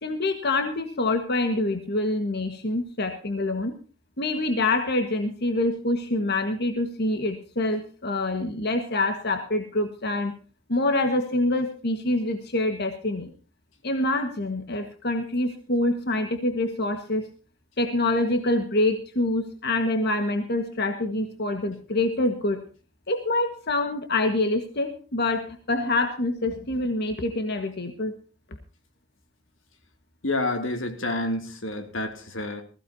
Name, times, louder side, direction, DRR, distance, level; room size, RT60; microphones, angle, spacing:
voice 1, 0.0-3.7 4.2-10.3 10.7-13.3 13.8-17.3 17.8-22.6 23.1-28.1, left 2 dB, 55° left, 6 dB, 1.6 m, -26 dB
voice 2, 30.2-32.6, left 2 dB, 85° left, 6 dB, 2.7 m, -29 dB
20.5 x 15.5 x 2.8 m, 0.37 s
head